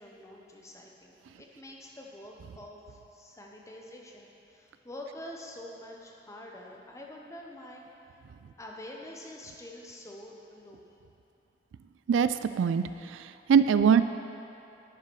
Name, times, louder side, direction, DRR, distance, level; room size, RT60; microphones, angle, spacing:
voice 1, 0.0-7.9 8.6-10.9, left 1 dB, 15° left, -1 dB, 0.8 m, -46 dB
voice 2, 13.5-14.0, right 7 dB, 90° right, 12 dB, 0.3 m, -20 dB
10.5 x 5.6 x 4.6 m, 2.8 s
head